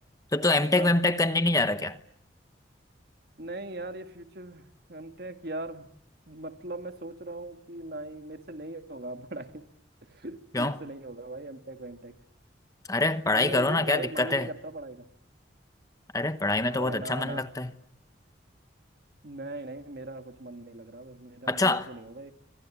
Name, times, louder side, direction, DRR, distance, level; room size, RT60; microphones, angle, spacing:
voice 1, 0.3-2.0 10.5-10.8 12.9-14.5 16.1-17.7 21.5-21.8, left 2 dB, 20° left, 1.0 m, -25 dB
voice 2, 3.4-5.9 6.3-9.7 10.0-12.2 13.3-15.1 16.6-17.4 19.2-22.3, right 2 dB, 55° right, 1.9 m, -39 dB
28.0 x 25.5 x 7.4 m
head